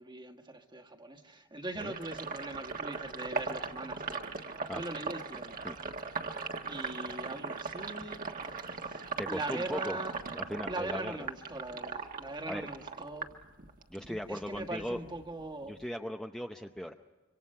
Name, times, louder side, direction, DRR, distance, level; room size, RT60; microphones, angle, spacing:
voice 1, 0.0-4.3 4.7-5.6 6.7-8.2 8.5-10.1 10.7-13.3 14.0-15.8, right 2 dB, 20° right, 4 dB, 1.6 m, -41 dB
Sink (filling or washing), 1.8-14.1 14.4-15.8, right 4 dB, 40° right, 1.5 m, -39 dB
voice 2, 9.2-10.0 10.3-11.1 12.5-12.7 13.9-15.0 15.7-16.9, equal, 5° left, 4 dB, 0.6 m, -38 dB
26.5 x 24.5 x 5.6 m, 1.3 s
head